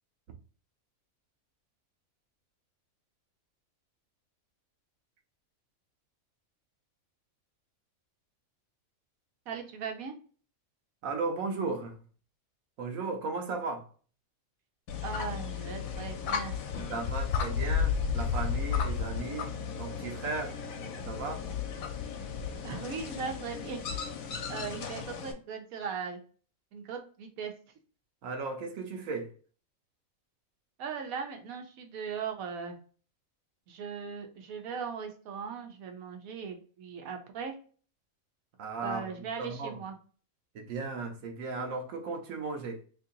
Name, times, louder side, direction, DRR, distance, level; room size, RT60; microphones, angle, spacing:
voice 1, 9.5-10.1 15.0-16.5 22.6-23.8 24.5-26.2 26.7-27.5 30.8-32.8 33.7-37.5 38.8-40.0, right 6 dB, 90° right, 1.2 m, -38 dB
voice 2, 11.0-12.0 12.8-13.9 16.9-20.6 21.1-21.5 28.2-29.3 38.6-39.1 39.4-39.8 40.5-42.8, right 4 dB, 70° right, 1.1 m, -36 dB
sound 1, 14.9-25.3, left 6 dB, 80° left, 1.1 m, -34 dB
3.0 x 2.7 x 3.8 m
omnidirectional pair, 1.4 m